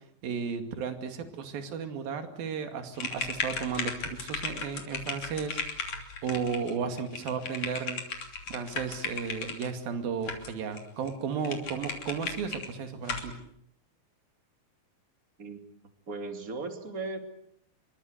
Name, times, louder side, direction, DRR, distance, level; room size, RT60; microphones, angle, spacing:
voice 1, 0.2-5.9 6.2-8.0 8.5-13.4, right 6 dB, 70° right, 7 dB, 4.2 m, -34 dB
sound 1, 3.0-9.7 10.3-10.8 11.1-11.2 11.5-12.7 13.1-13.3, left 5 dB, 50° left, 4.1 m, -36 dB
voice 2, 16.1-17.2, right 3 dB, 25° right, 6 dB, 2.7 m, -36 dB
27.5 x 23.5 x 8.0 m, 0.72 s
omnidirectional pair, 4.4 m